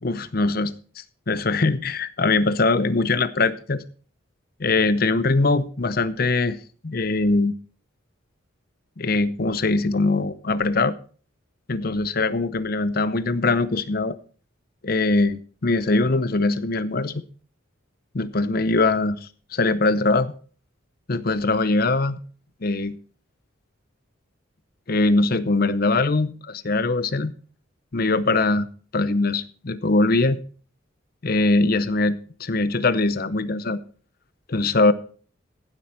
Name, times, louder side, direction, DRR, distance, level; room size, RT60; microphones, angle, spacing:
voice 1, 0.0-3.8 4.6-6.6 6.8-7.5 9.0-11.0 11.7-14.2 14.8-17.2 18.1-20.3 21.1-22.2 22.6-23.0 24.9-27.3 27.9-28.7 28.9-30.4 31.2-33.8 34.5-34.9, left 3 dB, 45° left, 0.7 m, -22 dB
16.0 x 7.7 x 4.4 m
head